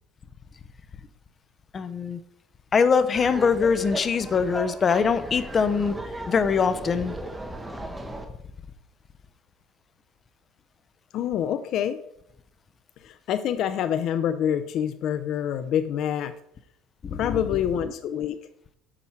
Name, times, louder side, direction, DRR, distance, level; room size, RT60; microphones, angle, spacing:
voice 1, 1.7-2.2 2.7-5.9 6.3-7.1 17.0-17.4, left 5 dB, 30° left, 12 dB, 0.8 m, -23 dB
Laughter, 3.1-8.2, right 1 dB, 10° right, 1.3 m, -36 dB
voice 2, 11.1-12.0 13.0-16.3 17.2-18.4, left 9 dB, 60° left, 12 dB, 0.5 m, -26 dB
9.8 x 7.2 x 4.6 m, 0.73 s
cardioid pair, 120°, 0 cm